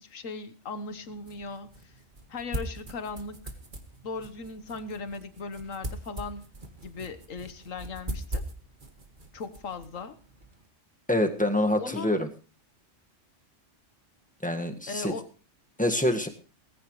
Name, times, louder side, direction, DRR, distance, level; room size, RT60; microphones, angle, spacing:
voice 1, 0.0-1.9 2.3-3.5 4.0-6.4 6.8-8.4 9.3-10.2 11.8-12.1 14.9-15.3, left 4 dB, 80° left, 12 dB, 1.6 m, -38 dB
sound 1, 0.7-10.7, right 1 dB, 40° right, 2.0 m, -41 dB
voice 2, 11.1-12.3 14.4-15.1 15.8-16.3, left 1 dB, 5° left, 6 dB, 1.5 m, -26 dB
19.0 x 15.5 x 3.2 m, 0.35 s
omnidirectional pair, 1.3 m